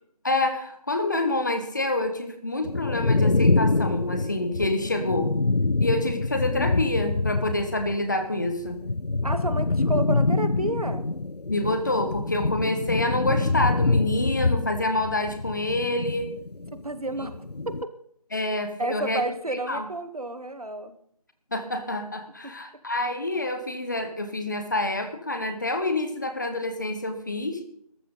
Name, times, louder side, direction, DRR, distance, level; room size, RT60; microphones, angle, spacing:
voice 1, 0.2-5.3 5.8-8.8 11.5-16.3 18.3-19.2 19.5-19.8 21.5-27.6, left 2 dB, 30° left, 7 dB, 1.6 m, -27 dB
sound 1, 2.6-8.0 8.2-16.8 17.1-17.8, left 3 dB, 85° left, 0.7 m, -25 dB
voice 2, 9.2-11.1 16.7-17.4 18.8-21.0 22.4-22.5, right 2 dB, 70° right, 10 dB, 1.7 m, -30 dB
19.0 x 14.0 x 4.0 m, 0.66 s
figure-of-eight pair, 170°, 20 cm